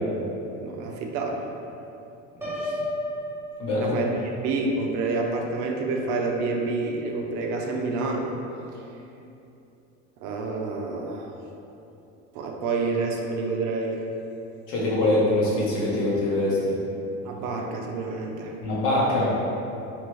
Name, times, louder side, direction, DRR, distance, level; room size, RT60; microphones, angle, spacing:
voice 1, 0.6-1.4 3.7-4.1 4.4-8.3 10.2-11.3 12.3-14.0 17.2-18.5, right 3 dB, 65° right, 1 dB, 0.5 m, -28 dB
voice 2, 2.4-2.7 3.6-4.0 14.7-16.8 18.6-19.4, left 1 dB, 70° left, -6 dB, 1.0 m, -24 dB
Piano, 2.4-4.3, left 1 dB, 5° right, 0.5 m, -32 dB
3.0 x 2.4 x 3.1 m, 2.8 s
cardioid pair, 120°, 33 cm